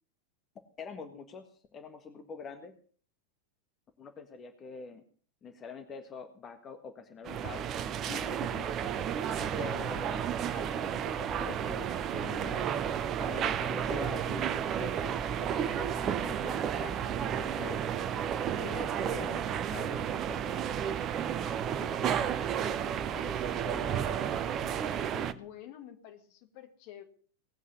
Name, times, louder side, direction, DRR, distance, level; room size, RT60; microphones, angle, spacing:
voice 1, 0.8-2.8 4.0-5.0 5.4-7.8 8.1-8.6 9.0-9.3 9.6-10.2 10.5-12.7 13.2-17.9 18.6-20.5, left 5 dB, 25° left, 8 dB, 1.6 m, -45 dB
sound 1, 7.3-25.3, right 9 dB, 30° right, 0.9 m, -32 dB
voice 2, 8.4-8.7 9.3-9.7 21.8-24.3 25.1-27.0, left 11 dB, 45° left, 8 dB, 2.0 m, -49 dB
19.0 x 8.4 x 6.8 m, 0.43 s
figure-of-eight pair, 90°, 0 cm